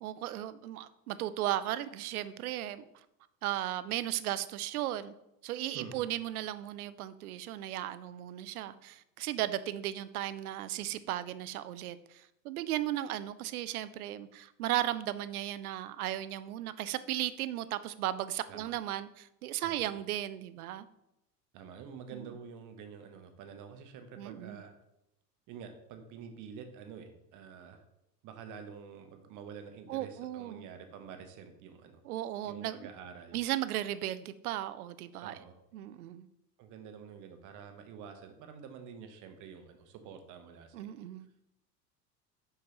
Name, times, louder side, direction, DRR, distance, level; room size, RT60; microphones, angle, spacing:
voice 1, 0.0-2.8 3.4-5.1 5.4-20.9 22.1-22.3 24.2-24.6 29.9-30.7 32.0-32.8 33.3-35.4 35.7-36.3 40.7-41.3, right 13 dB, 65° right, 15 dB, 0.5 m, -36 dB
voice 2, 5.7-6.1 18.5-18.7 19.6-19.9 21.5-24.7 25.5-27.8 28.2-32.0 32.4-33.4 35.2-35.6 36.6-40.9, right 6 dB, 40° right, 7 dB, 1.0 m, -48 dB
6.1 x 5.7 x 3.0 m, 0.86 s
figure-of-eight pair, 75°, 48 cm